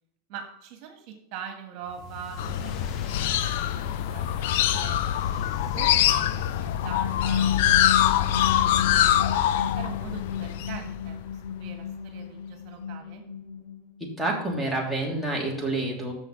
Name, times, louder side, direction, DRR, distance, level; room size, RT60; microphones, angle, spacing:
voice 1, 0.3-7.7 8.0-8.8 9.3-13.2, right 7 dB, 55° right, 5 dB, 1.5 m, -43 dB
sound 1, 1.8-7.1, left 4 dB, 45° left, 1.0 m, -42 dB
sound 2, 2.4-11.5, left 11 dB, 65° left, 0.5 m, -24 dB
sound 3, 6.5-14.1, left 8 dB, 85° left, 3.5 m, -33 dB
voice 2, 14.0-16.1, right 2 dB, 5° left, -1 dB, 3.1 m, -28 dB
7.1 x 5.8 x 7.1 m, 0.82 s
hypercardioid pair, 100°, 0 cm